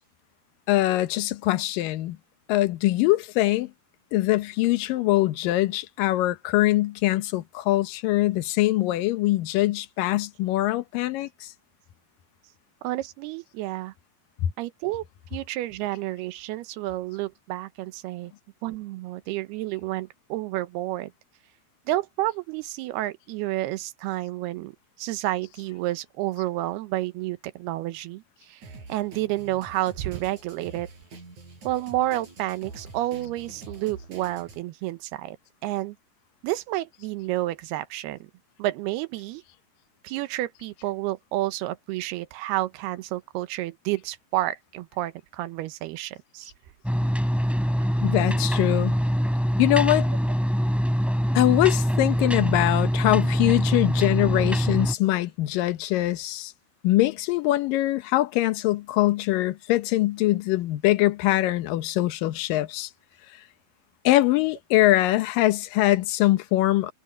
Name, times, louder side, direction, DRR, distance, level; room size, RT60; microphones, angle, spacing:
voice 1, 0.7-2.2 2.5-3.7 4.1-11.5 14.4-14.5 48.0-49.0 49.6-50.1 51.3-56.5 56.8-62.9 64.0-66.9, left 16 dB, 70° left, 2.5 m, -23 dB
voice 2, 12.8-13.9 14.6-15.0 15.3-18.3 18.6-21.1 21.9-28.6 28.9-30.9 31.6-35.4 35.6-36.0 36.4-38.2 38.6-39.4 40.0-46.5, right 16 dB, 90° right, 2.9 m, -30 dB
Drum kit, 28.6-34.6, right 3 dB, 50° right, 8.7 m, -45 dB
sound 1, 46.8-54.9, equal, ahead, 3.0 m, -24 dB
omnidirectional pair, 4.5 m